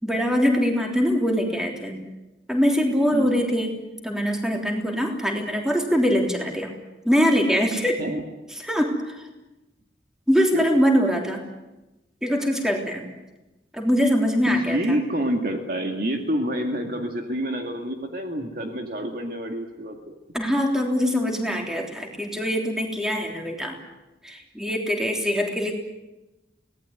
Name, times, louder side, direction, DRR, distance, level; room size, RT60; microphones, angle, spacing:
voice 1, 0.0-2.0 2.5-3.8 4.0-6.7 7.0-8.0 8.6-9.3 10.3-11.4 12.2-13.1 13.7-14.9 20.3-23.8 24.2-25.7, equal, 5° right, 1 dB, 3.4 m, -23 dB
voice 2, 3.1-3.4 8.0-8.2 10.5-10.7 14.5-20.0, equal, 50° right, 3 dB, 2.3 m, -27 dB
25.0 x 18.5 x 9.5 m, 1.0 s
head